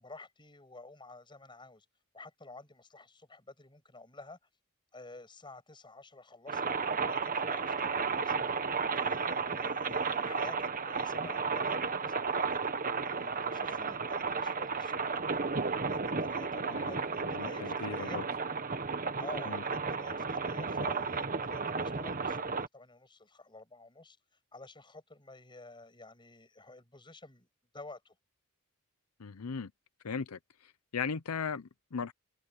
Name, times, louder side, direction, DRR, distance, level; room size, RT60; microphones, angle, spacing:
voice 1, 0.0-1.8 2.1-4.4 4.9-8.6 8.9-12.6 13.0-15.5 15.9-18.2 19.2-24.2 24.5-27.5 27.7-28.1, left 2 dB, 20° left, 6.9 m, -50 dB
sound 1, 6.5-22.7, right 5 dB, 40° right, 1.5 m, -33 dB
voice 2, 16.7-18.2 19.5-19.6 29.2-29.7 30.0-32.1, left 5 dB, 80° left, 0.7 m, -38 dB
head